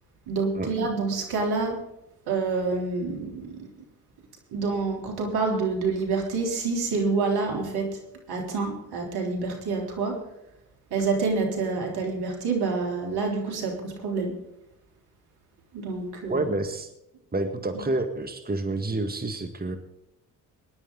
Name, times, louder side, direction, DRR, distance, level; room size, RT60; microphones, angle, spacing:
voice 1, 0.3-1.8 2.3-3.7 4.5-7.9 8.3-10.2 10.9-14.3 15.7-16.5, right 4 dB, 70° right, 1 dB, 3.7 m, -27 dB
voice 2, 16.3-16.9 17.3-19.8, right 2 dB, 25° right, 6 dB, 1.8 m, -28 dB
21.0 x 11.0 x 4.0 m, 0.85 s
hypercardioid pair, 45°, 40 cm